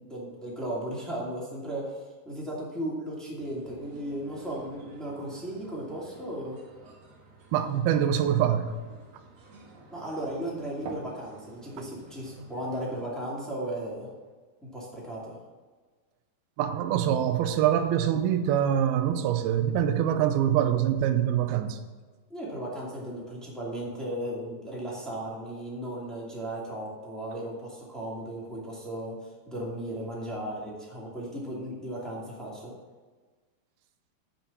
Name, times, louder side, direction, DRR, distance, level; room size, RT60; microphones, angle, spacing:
voice 1, 0.0-6.6 9.9-14.1 14.6-15.4 22.3-29.1 29.5-32.7, right 1 dB, ahead, 1.3 m, -36 dB
sound 1, 3.4-13.0, right 2 dB, 50° right, 2.1 m, -49 dB
voice 2, 7.5-8.7 16.6-21.8, right 10 dB, 80° right, 2.5 m, -24 dB
9.2 x 5.5 x 7.2 m
omnidirectional pair, 4.7 m